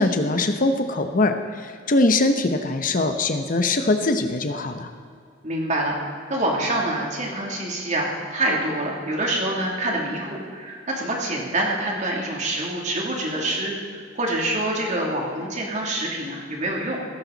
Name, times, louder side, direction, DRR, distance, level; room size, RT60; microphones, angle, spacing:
voice 1, 0.0-4.9, left 2 dB, 45° left, 7 dB, 0.9 m, -22 dB
voice 2, 5.4-13.7 14.1-17.0, right 1 dB, 40° right, -1 dB, 2.9 m, -26 dB
16.0 x 14.0 x 4.1 m, 2.2 s
head